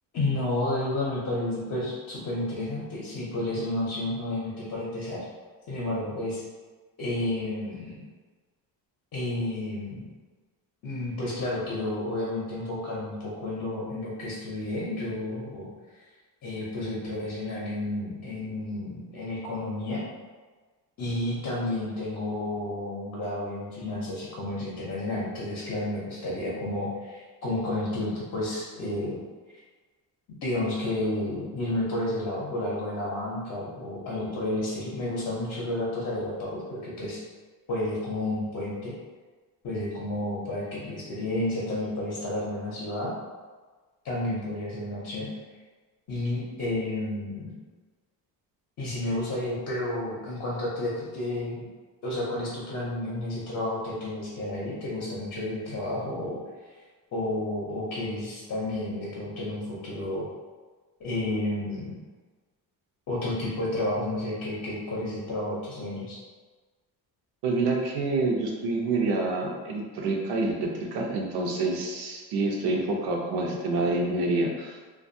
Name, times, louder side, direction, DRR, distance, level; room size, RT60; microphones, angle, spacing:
voice 1, 0.1-5.3 5.7-6.4 7.0-8.0 9.1-10.1 10.8-15.7 16.4-20.0 21.0-29.2 30.3-37.2 37.7-38.9 39.6-43.1 44.0-45.3 46.1-47.5 48.8-51.7 52.0-56.7 57.1-60.3 61.0-61.9 63.1-66.2, left 1 dB, 45° left, -6 dB, 0.6 m, -31 dB
voice 2, 67.4-74.8, right 3 dB, 80° right, 0 dB, 0.6 m, -27 dB
2.5 x 2.3 x 2.6 m, 1.4 s
cardioid pair, 165°, 39 cm